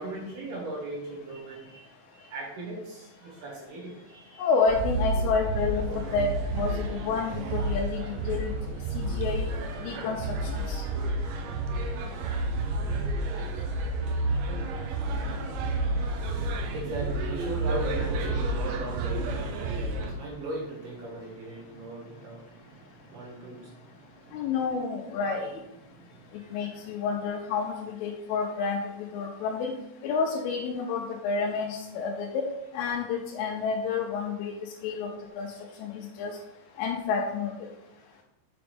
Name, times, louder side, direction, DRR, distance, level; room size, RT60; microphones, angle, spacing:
voice 1, 0.0-4.5 16.0-24.5 25.9-26.7, right 2 dB, 60° right, -5 dB, 3.4 m, -39 dB
voice 2, 4.4-8.5 8.9-9.4 9.8-10.2 10.7-10.8 24.3-25.5 26.5-28.8 29.1-29.7 30.0-32.5 32.7-35.1 35.4-35.5 35.8-36.3 36.8-37.5, left 5 dB, 90° left, -3 dB, 3.3 m, -29 dB
sound 1, 4.7-20.1, right 2 dB, 80° right, 2.8 m, -30 dB
7.0 x 6.1 x 3.5 m, 0.86 s
omnidirectional pair, 5.6 m